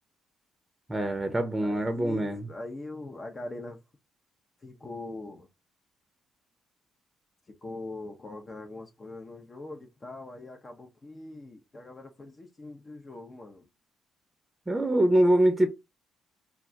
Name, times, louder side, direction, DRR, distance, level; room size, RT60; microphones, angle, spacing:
voice 1, 0.9-2.5 14.7-15.7, right 1 dB, 20° right, 0.6 m, -24 dB
voice 2, 1.6-3.8 4.6-5.5 7.5-13.7, left 2 dB, 35° left, 0.6 m, -42 dB
2.4 x 2.2 x 3.8 m
supercardioid pair, 65°, 0 cm